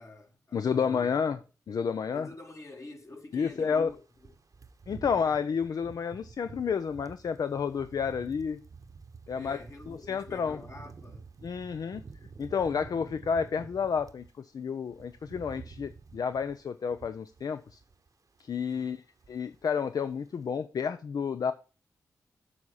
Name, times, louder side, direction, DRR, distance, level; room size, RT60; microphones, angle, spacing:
voice 1, 0.0-1.0 2.1-4.3 4.9-5.2 9.3-11.3 18.7-19.0, left 2 dB, 45° left, 2.3 m, -48 dB
voice 2, 0.5-1.4 1.7-2.3 3.3-3.9 4.9-8.6 9.3-9.6 9.9-10.6 11.4-12.0 12.4-17.8 18.4-19.0 19.3-21.5, left 6 dB, 65° left, 0.5 m, -30 dB
sound 1, 3.4-14.3 14.7-18.1 18.3-18.6 18.9-19.7 20.0-20.2, right 4 dB, 55° right, 0.8 m, -50 dB
7.2 x 4.2 x 6.3 m
supercardioid pair, 45°, 7 cm